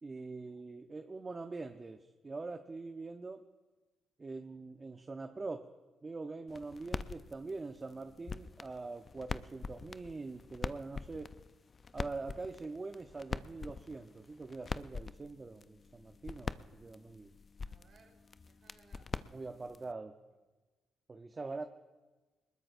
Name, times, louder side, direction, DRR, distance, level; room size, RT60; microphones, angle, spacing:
voice 1, 0.0-3.4 4.2-5.7 6.0-11.3 11.9-17.3 19.3-20.1 21.1-21.7, right 3 dB, 30° right, 6 dB, 0.7 m, -43 dB
sound 1, 6.5-19.9, left 4 dB, 35° left, 0.4 m, -44 dB
voice 2, 17.6-19.1, right 4 dB, 60° right, 2 dB, 3.8 m, -66 dB
22.5 x 20.5 x 2.6 m, 1.2 s
cardioid pair, 90°, 0 cm